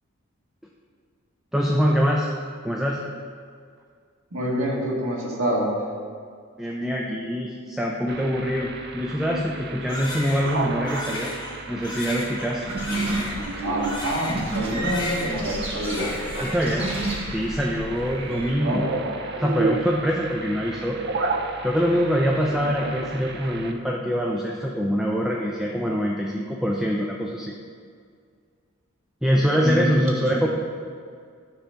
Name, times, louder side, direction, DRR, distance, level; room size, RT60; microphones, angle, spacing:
voice 1, 1.5-2.3 2.6-3.0 6.6-11.3 11.7-12.7 16.4-16.9 17.3-18.9 19.4-21.0 21.6-27.5 29.2-30.5, equal, ahead, -2 dB, 0.5 m, -24 dB
voice 2, 4.3-5.7 13.6-16.1 18.6-19.0 29.6-30.5, equal, 85° right, -2 dB, 1.7 m, -27 dB
sound 1, 8.1-23.7, right 3 dB, 55° right, 0.6 m, -33 dB
Crying sobbing, 9.9-14.6 14.8-15.6 15.8-16.8, left 2 dB, 20° left, 1.3 m, -34 dB
sound 2, 12.6-18.5, right 1 dB, 25° right, 1.2 m, -31 dB
9.9 x 3.9 x 5.7 m, 2.1 s
head